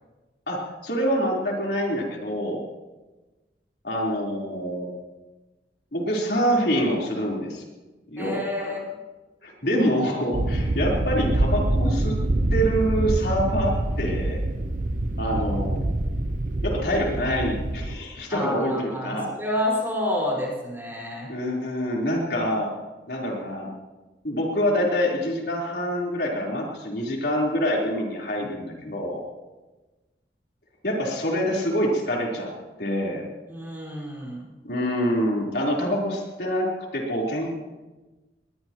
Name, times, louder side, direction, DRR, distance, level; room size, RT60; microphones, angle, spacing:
voice 1, 0.5-2.6 3.8-4.9 5.9-7.6 8.1-8.7 9.4-12.2 12.5-14.4 15.2-15.9 16.6-19.3 21.3-22.7 23.1-23.7 24.2-29.2 30.8-32.5 32.8-33.3 34.6-37.6, equal, 65° left, -2 dB, 4.0 m, -26 dB
voice 2, 8.2-8.8 18.3-21.3 33.5-34.5, left 1 dB, 15° right, -4 dB, 5.2 m, -29 dB
sound 1, 10.3-17.9, right 1 dB, 45° right, 0.8 m, -25 dB
21.0 x 21.0 x 3.1 m, 1.2 s
head